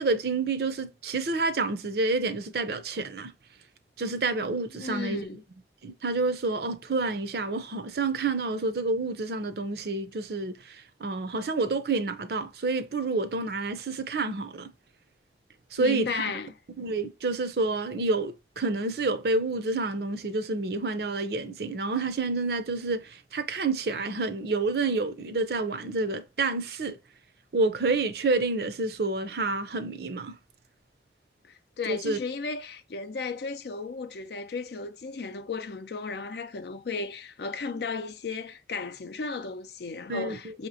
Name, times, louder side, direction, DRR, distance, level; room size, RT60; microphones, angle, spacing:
voice 1, 0.0-3.3 4.0-5.3 5.8-14.7 15.7-16.3 16.8-27.0 27.5-30.3 31.9-32.2 40.1-40.5, right 3 dB, 60° right, 0.6 m, -29 dB
voice 2, 4.8-5.4 15.8-16.6 31.4-40.7, left 4 dB, 65° left, 0.5 m, -35 dB
5.7 x 2.9 x 2.7 m
head